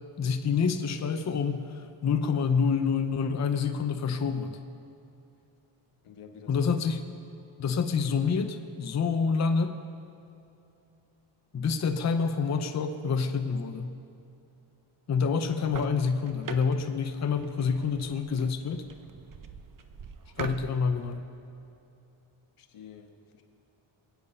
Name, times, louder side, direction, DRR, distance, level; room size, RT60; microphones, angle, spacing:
voice 1, 0.2-4.6 6.5-7.0 7.6-9.8 11.5-14.0 15.1-18.9 20.4-21.3, left 5 dB, 35° left, 7 dB, 0.7 m, -27 dB
voice 2, 6.0-6.7 22.6-23.4, left 6 dB, 80° left, 4 dB, 1.6 m, -49 dB
sound 1, 15.4-21.1, right 5 dB, 40° right, 0.8 m, -43 dB
23.0 x 8.7 x 5.5 m, 2.8 s
wide cardioid pair, 130°, 50 cm